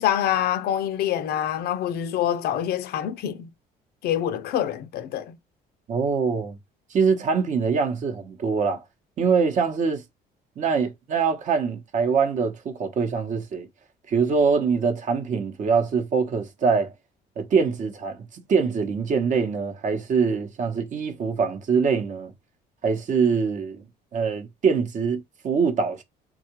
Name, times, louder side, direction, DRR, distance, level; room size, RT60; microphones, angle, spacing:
voice 1, 0.0-3.5 4.0-5.4, left 11 dB, 70° left, 0.5 m, -26 dB
voice 2, 5.9-6.6 6.9-8.8 9.2-10.0 10.6-13.7 14.1-16.9 17.4-22.3 22.8-23.9 24.1-26.0, right 5 dB, 50° right, 0.8 m, -24 dB
3.5 x 2.3 x 2.9 m
cardioid pair, 110°, 17 cm